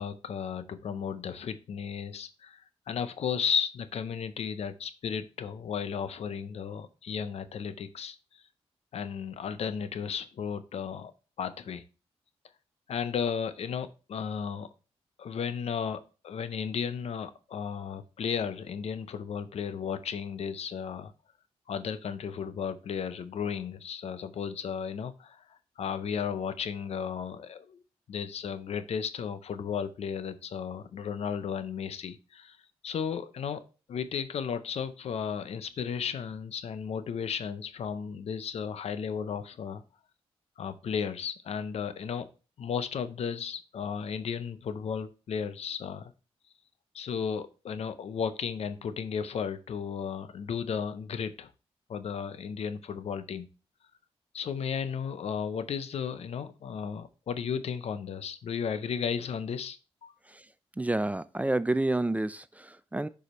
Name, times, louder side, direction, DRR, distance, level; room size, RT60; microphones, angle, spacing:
voice 1, 0.0-8.4 8.9-11.1 11.4-11.8 12.9-14.7 15.2-21.1 21.7-27.8 28.1-32.6 32.8-33.6 33.9-39.8 40.6-42.3 42.6-46.1 46.9-51.5 51.9-53.5 54.3-60.1, left 7 dB, 70° left, 12 dB, 0.6 m, -34 dB
voice 2, 60.8-63.1, right 2 dB, 15° right, 15 dB, 0.3 m, -29 dB
6.6 x 4.9 x 3.0 m, 0.33 s
cardioid pair, 75°, 11 cm